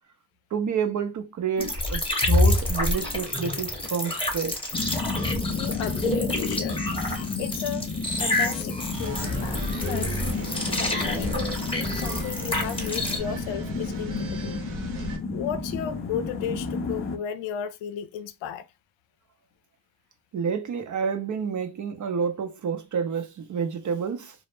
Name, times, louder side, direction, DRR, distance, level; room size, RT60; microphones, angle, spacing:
voice 1, 0.5-4.6 20.3-24.3, right 6 dB, 40° right, 0.5 m, -29 dB
sound 1, 1.6-13.2, left 2 dB, 10° left, 0.8 m, -28 dB
sound 2, 4.7-17.2, left 4 dB, 30° left, 0.5 m, -32 dB
voice 2, 5.6-6.8 7.4-7.9 8.2-10.2 10.6-14.6 15.3-18.7, left 9 dB, 75° left, 0.5 m, -34 dB
sound 3, 9.0-15.2, right 3 dB, 75° right, 0.7 m, -38 dB
2.0 x 2.0 x 3.1 m
cardioid pair, 85°, 46 cm